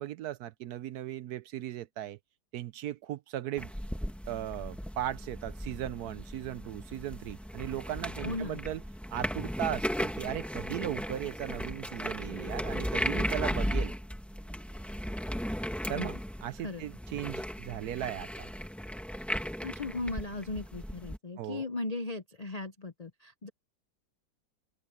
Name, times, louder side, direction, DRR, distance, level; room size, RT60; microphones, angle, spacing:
voice 1, 0.0-2.2 2.5-3.7 4.3-8.8 9.1-13.9 15.9-16.1 16.4-18.5 21.4-21.6, right 12 dB, 70° right, 1.0 m, -37 dB
sound 1, 3.6-21.2, equal, ahead, 1.2 m, -36 dB
voice 2, 8.2-8.6 15.9-16.2 16.6-16.8 19.6-23.5, left 2 dB, 65° left, 0.3 m, -37 dB
open air
omnidirectional pair, 2.0 m